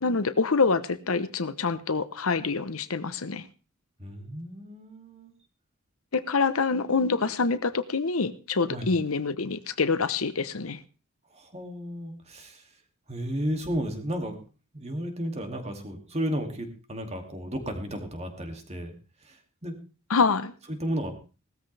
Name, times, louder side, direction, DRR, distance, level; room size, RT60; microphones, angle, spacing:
voice 1, 0.0-3.5 6.1-10.8 20.1-20.5, left 4 dB, 85° left, 13 dB, 0.9 m, -26 dB
voice 2, 4.0-5.3 7.2-7.3 8.7-8.9 11.3-12.7 13.1-14.4 14.7-18.9 19.2-19.7 20.7-21.1, equal, 30° right, 4 dB, 2.5 m, -33 dB
18.0 x 13.5 x 3.4 m, 0.34 s
head